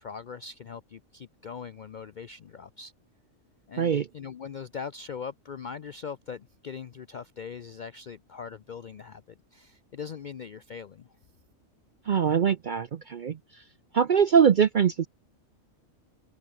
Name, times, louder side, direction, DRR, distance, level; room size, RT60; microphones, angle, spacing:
voice 1, 0.0-2.9 3.7-9.2 9.5-11.1, left 6 dB, 60° left, 0.5 m, -41 dB
voice 2, 3.8-4.1 12.1-13.4 13.9-15.1, right 7 dB, 55° right, 0.5 m, -22 dB
omnidirectional pair, 1.4 m